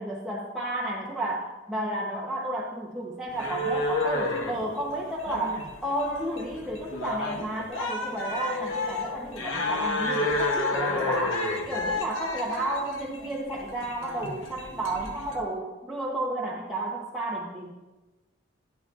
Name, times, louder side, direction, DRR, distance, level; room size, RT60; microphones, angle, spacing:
voice 1, 0.0-17.7, right 1 dB, ahead, -5 dB, 0.8 m, -32 dB
sound 1, 3.3-15.4, left 2 dB, 70° left, 0.9 m, -31 dB
10.5 x 10.0 x 2.4 m, 1.1 s
head